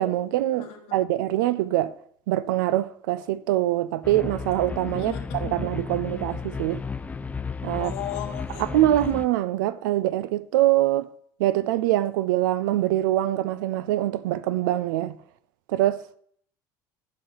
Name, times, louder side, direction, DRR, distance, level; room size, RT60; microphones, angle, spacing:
voice 1, 0.0-1.9 2.3-5.1 5.4-6.8 7.6-7.9 8.6-11.1 11.4-15.2 15.7-16.1, right 14 dB, 85° right, 0.4 m, -24 dB
voice 2, 0.6-0.9 4.8-5.6 7.7-8.6, left 11 dB, 65° left, 1.4 m, -36 dB
sound 1, 4.0-9.3, left 5 dB, 15° left, 0.3 m, -33 dB
5.6 x 5.1 x 5.5 m
supercardioid pair, 100°, 10 cm